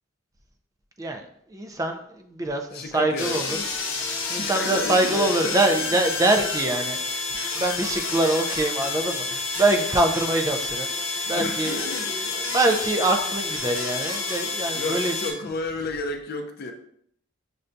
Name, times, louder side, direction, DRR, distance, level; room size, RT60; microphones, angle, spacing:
voice 1, 1.5-3.6 4.3-7.2 7.5-15.1, right 2 dB, 15° right, 5 dB, 0.4 m, -24 dB
voice 2, 2.7-3.7 4.2-6.0 11.3-12.1 14.7-16.7, left 3 dB, 50° left, 5 dB, 0.5 m, -32 dB
sound 1, 3.2-15.3, left 3 dB, 70° left, 0.9 m, -29 dB
6.5 x 2.2 x 2.5 m, 0.69 s
head